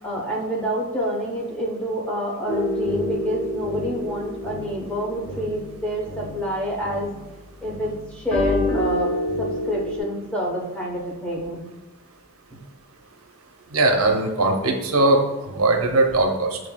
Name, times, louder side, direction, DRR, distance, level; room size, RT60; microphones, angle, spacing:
voice 1, 0.0-7.1 7.6-11.6 12.5-12.6, equal, 5° left, -3 dB, 0.8 m, -27 dB
sound 1, 2.5-7.3 7.6-10.0, left 1 dB, 70° left, 1.0 m, -28 dB
voice 2, 13.7-15.2 15.5-16.6, right 2 dB, 70° right, 3 dB, 0.6 m, -19 dB
7.2 x 2.6 x 2.2 m, 1.2 s
head